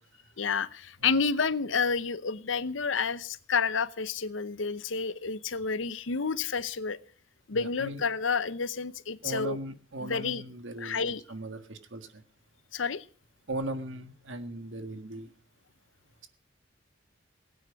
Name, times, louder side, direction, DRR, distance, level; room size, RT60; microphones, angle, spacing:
voice 1, 0.4-7.0 7.5-9.6 10.0-10.4 10.8-11.2 12.7-13.0, left 5 dB, 85° left, 16 dB, 0.8 m, -30 dB
voice 2, 7.5-8.0 9.2-12.2 13.5-15.3, right 1 dB, 75° right, 9 dB, 1.7 m, -38 dB
17.5 x 9.5 x 6.3 m, 0.44 s
head